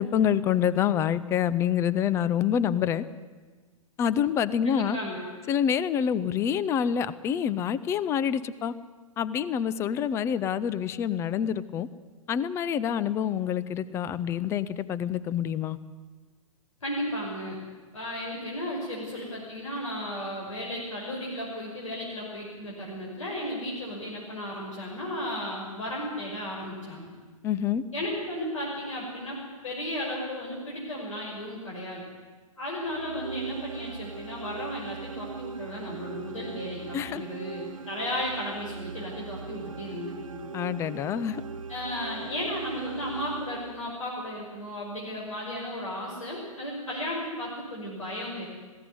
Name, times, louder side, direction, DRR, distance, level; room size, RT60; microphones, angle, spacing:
voice 1, 0.0-3.0 4.0-5.0 5.5-8.7 9.2-11.9 12.3-15.8 27.4-27.8 36.9-37.2 40.5-41.4, left 9 dB, 15° left, 16 dB, 0.6 m, -27 dB
voice 2, 4.6-5.2 16.8-17.6 17.9-27.1 27.9-29.4 29.6-32.0 32.6-40.5 41.7-48.5, left 1 dB, 65° left, -3 dB, 5.8 m, -34 dB
sound 1, 32.8-44.1, right 5 dB, 70° right, 0.9 m, -40 dB
20.0 x 16.5 x 9.6 m, 1.4 s
figure-of-eight pair, 115°, 18 cm